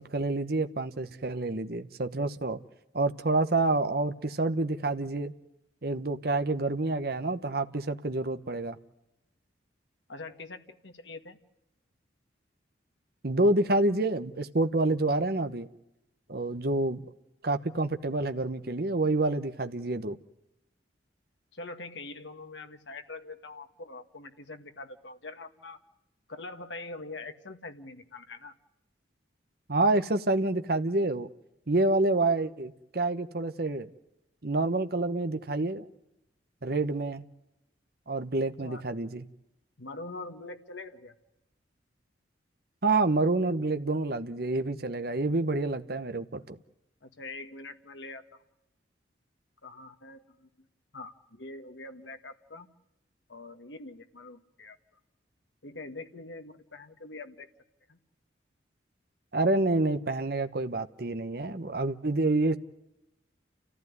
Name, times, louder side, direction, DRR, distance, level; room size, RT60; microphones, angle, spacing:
voice 1, 0.0-2.6 2.9-5.3 5.8-8.8 13.2-15.7 16.3-17.0 17.4-20.2 29.7-31.3 31.7-33.9 34.4-35.9 36.6-37.2 38.1-39.2 42.8-46.6 59.3-62.6, right 2 dB, 55° right, 1.1 m, -28 dB
voice 2, 10.1-11.4 21.5-25.8 26.3-28.5 38.6-38.8 39.8-41.1 47.0-48.2 49.6-50.5 50.9-52.7 53.3-54.8 55.6-57.5 57.9-58.0, left 3 dB, 80° left, 1.7 m, -43 dB
29.5 x 15.0 x 9.6 m
head